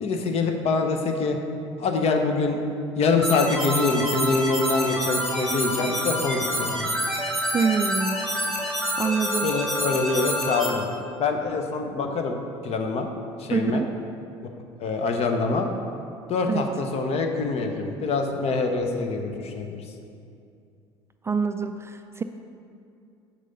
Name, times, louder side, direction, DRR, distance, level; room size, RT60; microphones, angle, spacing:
voice 1, 0.0-1.4 1.8-2.6 3.0-7.0 9.4-10.9 11.2-12.4 12.6-13.1 13.4-13.8 14.8-15.7 16.3-19.8, left 3 dB, 45° left, 4 dB, 0.9 m, -25 dB
sound 1, 3.2-10.7, equal, ahead, 1.8 m, -27 dB
voice 2, 7.5-8.2 9.0-9.5 13.5-13.9 16.5-16.7 21.2-22.2, right 5 dB, 20° right, 7 dB, 0.3 m, -25 dB
7.5 x 6.3 x 4.0 m, 2.5 s
figure-of-eight pair, 60°, 15 cm